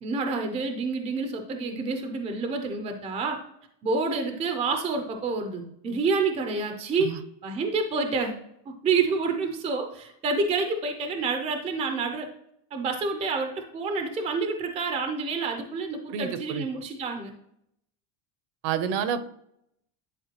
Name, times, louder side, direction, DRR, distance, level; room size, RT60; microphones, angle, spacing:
voice 1, 0.0-3.4 3.8-8.4 8.8-12.3 12.7-17.3, right 4 dB, 15° right, 5 dB, 0.4 m, -28 dB
voice 2, 16.1-16.7 18.6-19.2, right 7 dB, 55° right, 12 dB, 0.7 m, -28 dB
10.5 x 4.4 x 2.9 m, 0.76 s
cardioid pair, 175°, 49 cm